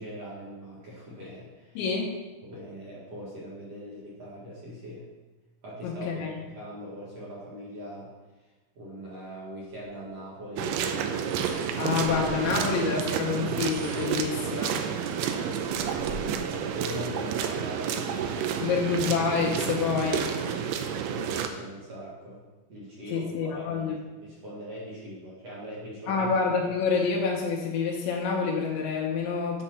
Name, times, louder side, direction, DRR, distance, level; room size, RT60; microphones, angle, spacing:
voice 1, 0.0-1.8 2.4-5.1 5.6-8.1 8.8-12.0 15.4-18.8 21.1-22.4 22.7-26.3, equal, 50° right, -7 dB, 2.1 m, -41 dB
voice 2, 1.8-2.2 5.8-6.3 11.8-14.8 18.6-20.3 23.1-24.0 26.1-29.6, left 5 dB, 80° left, -1 dB, 3.2 m, -27 dB
sound 1, 9.9-10.0 11.1-12.5 13.5-14.3 14.9-15.0 15.4-16.5, right 1 dB, 70° right, 3.5 m, -44 dB
sound 2, 10.6-21.5, right 7 dB, 85° right, 2.4 m, -30 dB
10.0 x 4.4 x 5.7 m, 1.2 s
omnidirectional pair, 5.3 m